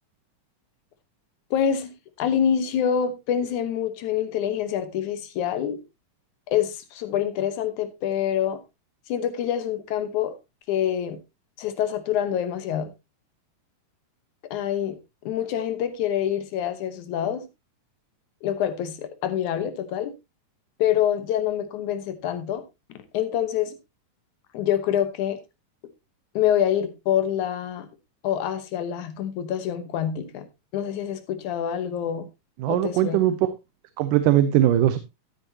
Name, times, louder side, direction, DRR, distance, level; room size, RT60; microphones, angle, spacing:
voice 1, 1.5-1.9 2.2-5.8 6.5-8.6 9.1-10.3 10.7-11.2 11.6-12.9 14.5-15.0 15.3-17.4 18.4-20.1 20.8-22.6 23.1-23.7 24.5-25.4 26.4-27.9 28.2-30.5 30.7-32.3 32.7-33.2, left 9 dB, 70° left, 2.4 m, -26 dB
voice 2, 32.6-33.5 34.0-35.0, right 12 dB, 90° right, 2.3 m, -20 dB
13.0 x 9.1 x 2.8 m
omnidirectional pair, 3.7 m